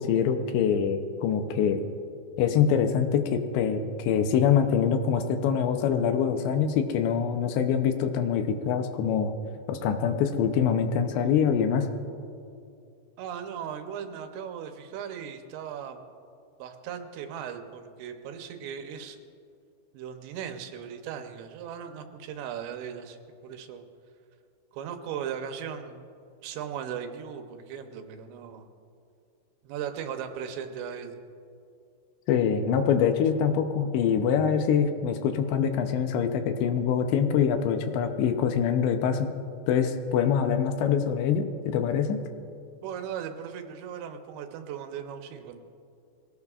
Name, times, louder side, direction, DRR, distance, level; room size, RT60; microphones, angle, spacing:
voice 1, 0.0-1.8 2.4-9.3 9.7-11.9 32.3-39.3 39.7-42.2, left 7 dB, 80° left, 7 dB, 2.9 m, -24 dB
voice 2, 13.2-16.0 16.6-19.2 19.9-23.2 23.4-23.8 24.7-26.1 26.4-28.7 29.6-31.2 42.8-45.6, right 8 dB, 80° right, 6 dB, 3.1 m, -37 dB
22.5 x 17.5 x 2.4 m, 2.5 s
omnidirectional pair, 5.2 m